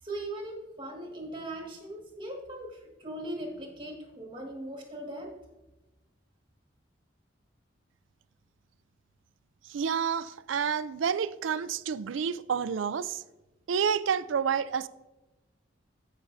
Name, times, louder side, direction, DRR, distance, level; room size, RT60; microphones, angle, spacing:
voice 1, 0.0-5.4, right 1 dB, 25° right, 1.8 m, -39 dB
voice 2, 9.7-13.2 13.7-14.9, right 7 dB, 80° right, 0.4 m, -29 dB
14.5 x 6.1 x 2.7 m
head